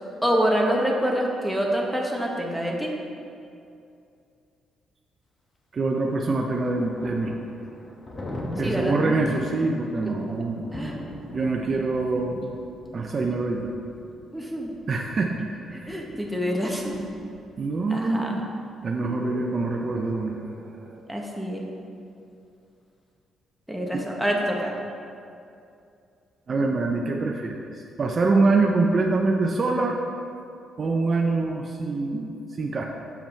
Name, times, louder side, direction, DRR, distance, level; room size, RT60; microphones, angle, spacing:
voice 1, 0.2-2.9 8.6-9.7 10.7-11.0 14.3-14.8 15.7-17.0 17.9-18.4 21.1-21.6 23.7-24.8, equal, ahead, -1 dB, 1.1 m, -26 dB
voice 2, 5.7-7.4 8.6-10.7 11.3-12.6 12.9-13.7 14.9-16.0 17.6-18.4 18.8-21.1 23.9-24.0 26.5-30.0 30.8-32.9, right 3 dB, 40° right, 2 dB, 0.5 m, -25 dB
Thunder, 6.0-17.8, left 1 dB, 30° left, 1.1 m, -40 dB
7.1 x 5.7 x 4.4 m, 2.5 s
cardioid pair, 90°, 0 cm